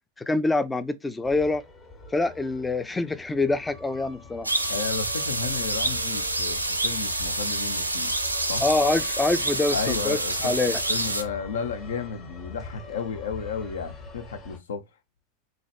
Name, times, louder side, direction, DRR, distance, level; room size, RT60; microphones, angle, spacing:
voice 1, 0.3-1.6 2.1-4.5 8.6-10.8, left 2 dB, 10° left, 0.4 m, -25 dB
sound 1, 1.2-14.6, left 3 dB, 25° left, 1.0 m, -43 dB
sound 2, 4.4-11.2, right 2 dB, 85° right, 0.6 m, -27 dB
voice 2, 4.7-8.1 8.5-8.6 9.7-14.8, left 6 dB, 65° left, 0.7 m, -33 dB
3.9 x 3.0 x 3.2 m
figure-of-eight pair, 90°, 0 cm